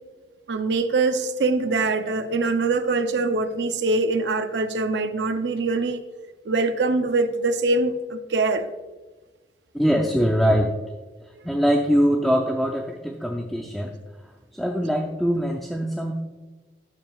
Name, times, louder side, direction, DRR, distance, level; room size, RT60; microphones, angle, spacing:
voice 1, 0.5-6.0 6.5-8.7, right 3 dB, 80° right, 8 dB, 0.6 m, -23 dB
voice 2, 9.7-10.7 11.4-13.9 14.5-16.2, equal, ahead, 1 dB, 0.5 m, -22 dB
12.0 x 7.1 x 2.4 m, 1.3 s
head